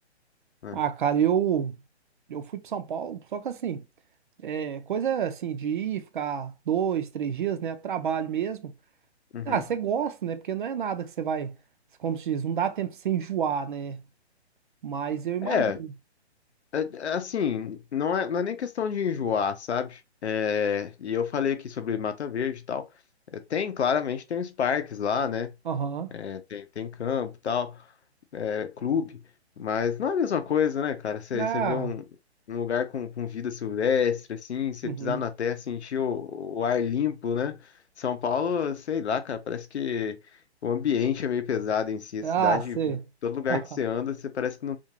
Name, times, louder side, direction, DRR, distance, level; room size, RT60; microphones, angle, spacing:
voice 1, 0.7-1.7 2.3-3.8 4.4-8.7 9.5-11.5 12.0-14.0 14.8-15.9 25.7-26.1 31.3-31.9 34.8-35.2 42.2-43.0 43.5-43.6, right 8 dB, 50° right, 0.5 m, -28 dB
voice 2, 15.4-15.8 16.7-22.9 23.3-25.5 26.1-27.8 28.3-29.2 29.6-32.0 32.5-37.7 38.0-40.2 40.6-43.0 43.2-44.8, left 7 dB, 75° left, 0.7 m, -28 dB
2.5 x 2.4 x 2.8 m
figure-of-eight pair, 135°, 34 cm